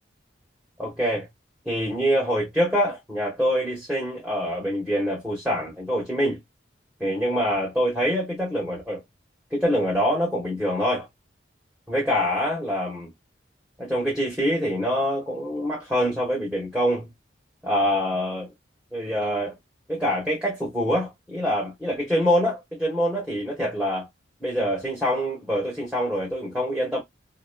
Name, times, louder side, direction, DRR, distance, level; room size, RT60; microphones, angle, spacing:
voice 1, 0.8-1.3 1.6-6.4 7.0-9.0 9.5-11.1 11.9-13.1 13.8-17.1 17.6-18.5 18.9-19.6 19.9-24.1 24.4-27.0, equal, 5° right, 1.2 m, -25 dB
4.2 x 3.0 x 2.2 m
head